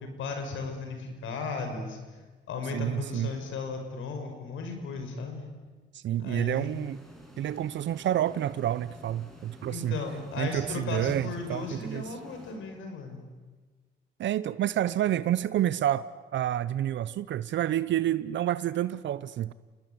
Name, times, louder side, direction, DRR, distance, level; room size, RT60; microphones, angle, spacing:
voice 1, 0.0-2.0 2.5-5.4 6.2-6.7 9.7-13.2, left 4 dB, 80° left, 5 dB, 5.9 m, -35 dB
voice 2, 2.7-3.3 5.9-7.0 7.4-10.0 10.4-12.0 14.2-16.1 16.3-19.5, right 11 dB, 65° right, 16 dB, 0.7 m, -29 dB
sound 1, 6.5-13.3, equal, ahead, 6.9 m, -51 dB
29.0 x 20.0 x 9.6 m, 1.3 s
cardioid pair, 90°, 20 cm